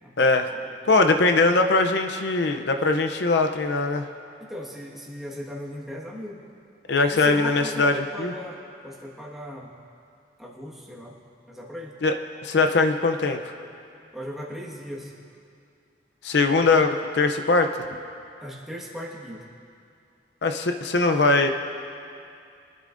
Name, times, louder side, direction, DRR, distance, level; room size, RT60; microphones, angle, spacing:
voice 1, 0.2-0.5 0.9-4.1 6.9-8.3 12.0-12.1 12.4-13.4 16.2-17.7 20.4-21.5, left 3 dB, 65° left, 5 dB, 0.5 m, -21 dB
voice 2, 4.4-6.4 7.1-9.7 10.4-11.2 11.5-12.0 14.1-15.1 18.4-19.5, equal, ahead, -5 dB, 1.5 m, -38 dB
24.0 x 12.0 x 2.6 m, 2.5 s
head